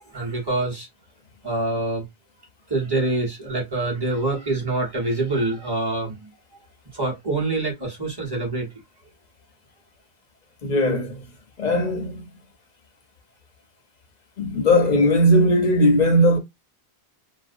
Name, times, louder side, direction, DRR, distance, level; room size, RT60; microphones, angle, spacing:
voice 1, 0.1-0.9 1.4-2.0 2.7-6.3 6.9-8.7, right 2 dB, 25° right, 0.9 m, -25 dB
voice 2, 10.6-11.2 11.6-12.3 14.4-16.4, equal, 50° left, 0.6 m, -18 dB
2.5 x 2.1 x 2.5 m
omnidirectional pair, 1.1 m